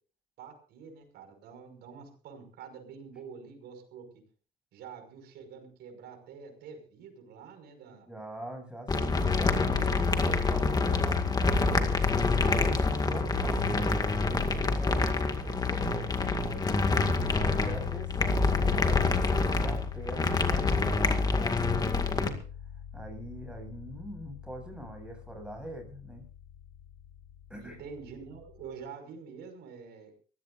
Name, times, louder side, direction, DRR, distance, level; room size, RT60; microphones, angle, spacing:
voice 1, 0.4-4.0 4.7-8.1 9.6-9.8 27.6-30.1, right 6 dB, 75° right, 6 dB, 5.8 m, -47 dB
voice 2, 7.9-12.1 12.5-16.9 17.4-22.4 22.9-26.2 27.5-27.8, equal, 5° right, 3 dB, 7.9 m, -43 dB
sound 1, 8.9-22.3, left 3 dB, 25° left, 2.1 m, -27 dB
sound 2, 16.9-28.7, left 11 dB, 55° left, 3.7 m, -41 dB
23.5 x 16.5 x 2.6 m, 0.39 s
cardioid pair, 110°, 17 cm